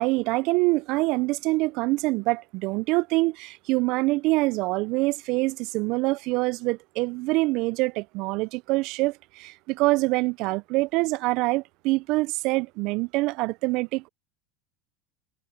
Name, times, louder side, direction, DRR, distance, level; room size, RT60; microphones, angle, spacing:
voice 1, 0.0-14.1, right 23 dB, 60° right, 0.4 m, -25 dB
hypercardioid pair, 95°, 0 cm